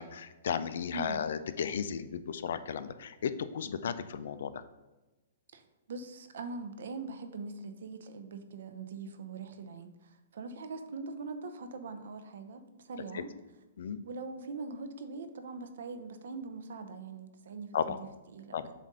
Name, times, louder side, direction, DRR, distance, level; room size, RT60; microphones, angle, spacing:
voice 1, 0.0-4.6 13.1-13.2 13.8-14.0 17.7-18.0 18.5-18.7, left 7 dB, 65° left, 12 dB, 0.4 m, -34 dB
voice 2, 5.9-13.3 14.0-18.7, right 4 dB, 70° right, 8 dB, 0.6 m, -42 dB
7.2 x 2.6 x 5.4 m, 1.1 s
hypercardioid pair, 155°, 0 cm